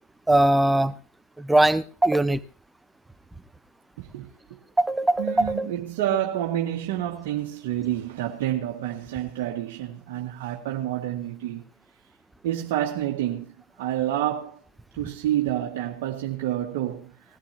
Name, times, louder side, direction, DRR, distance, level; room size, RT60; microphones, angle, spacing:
voice 1, 0.3-0.9 1.4-2.4 4.8-5.7, right 1 dB, 5° right, 0.7 m, -21 dB
voice 2, 4.0-4.3 5.2-11.6 12.4-13.5 13.8-14.6 14.9-17.1, right 12 dB, 65° right, 2.0 m, -28 dB
20.5 x 14.0 x 3.0 m
hypercardioid pair, 110°, 0 cm